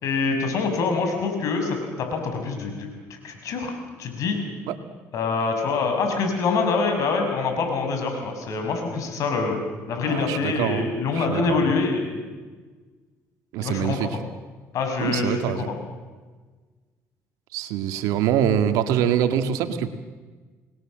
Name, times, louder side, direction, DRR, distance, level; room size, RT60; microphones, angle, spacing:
voice 1, 0.0-2.9 3.2-3.7 4.0-4.4 5.1-9.6 9.9-12.2 13.6-14.3 14.7-15.8, left 4 dB, 65° left, 4 dB, 6.3 m, -25 dB
voice 2, 10.1-10.9 11.1-11.7 13.5-14.2 15.0-15.7 17.5-19.9, right 9 dB, 85° right, 8 dB, 1.9 m, -24 dB
29.5 x 20.0 x 7.6 m, 1.4 s
cardioid pair, 90°, 6 cm